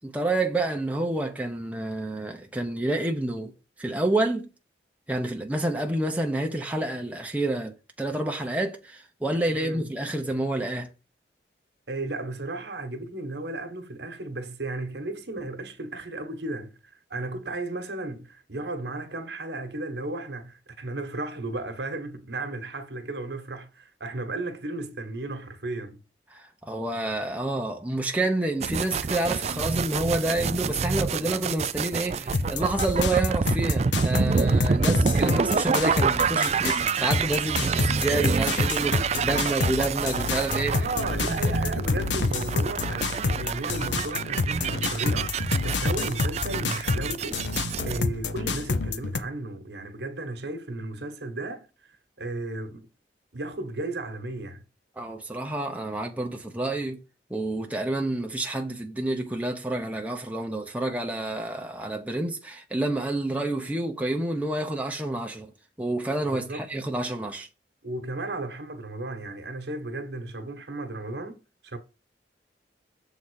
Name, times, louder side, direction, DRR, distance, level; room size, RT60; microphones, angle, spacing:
voice 1, 0.0-3.5 3.8-4.5 5.1-10.9 26.3-40.8 41.2-41.5 55.0-57.0 57.3-65.5 65.8-67.5, right 2 dB, 10° right, 0.8 m, -29 dB
voice 2, 9.5-9.9 11.9-16.8 17.1-26.0 40.7-51.7 52.2-52.9 53.3-54.6 66.3-66.6 67.8-71.8, right 2 dB, 70° right, 1.3 m, -34 dB
sound 1, 28.6-48.0, right 5 dB, 40° right, 0.4 m, -27 dB
sound 2, 32.3-49.2, left 4 dB, 85° left, 0.8 m, -28 dB
7.1 x 3.9 x 6.4 m
head